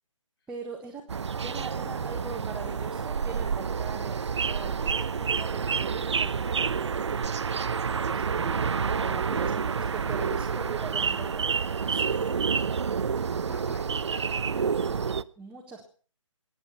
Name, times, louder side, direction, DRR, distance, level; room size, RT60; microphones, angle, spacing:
voice 1, 0.5-1.1 1.4-7.3 7.9-11.5 11.9-12.0 13.5-13.7 15.4-15.9, right 4 dB, 5° right, -2 dB, 1.5 m, -41 dB
sound 1, 1.1-15.2, right 6 dB, 55° right, 0.7 m, -28 dB
voice 2, 11.8-12.7 13.4-14.8, left 4 dB, 45° left, 5 dB, 3.8 m, -49 dB
22.5 x 9.3 x 5.7 m, 0.41 s
figure-of-eight pair, 145°, 17 cm